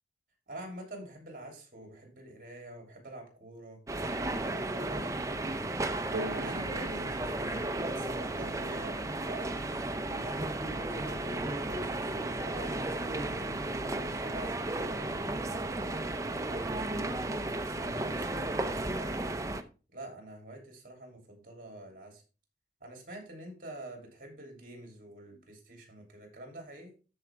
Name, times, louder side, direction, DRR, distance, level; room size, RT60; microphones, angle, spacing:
voice 1, 0.5-3.8 4.3-5.8 6.3-9.5 10.1-13.6 14.2-16.1 16.5-19.4 19.9-22.2 22.8-26.9, right 1 dB, 50° right, 2 dB, 3.0 m, -47 dB
sound 1, 3.9-19.6, right 2 dB, 20° right, 0.6 m, -34 dB
sound 2, 6.1-9.8, right 2 dB, 80° right, 0.4 m, -44 dB
13.5 x 4.9 x 3.4 m, 0.34 s
head